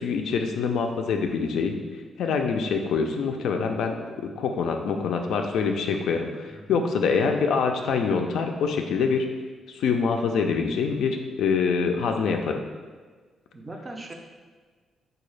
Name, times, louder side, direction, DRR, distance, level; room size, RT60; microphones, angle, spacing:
voice 1, 0.0-1.8 2.2-3.9 4.4-9.2 9.7-12.6, left 5 dB, 75° left, 4 dB, 0.3 m, -25 dB
voice 2, 6.5-6.8 13.5-14.1, right 2 dB, 20° right, 2 dB, 0.3 m, -39 dB
3.7 x 2.3 x 3.2 m, 1.4 s
cardioid pair, 140°, 0 cm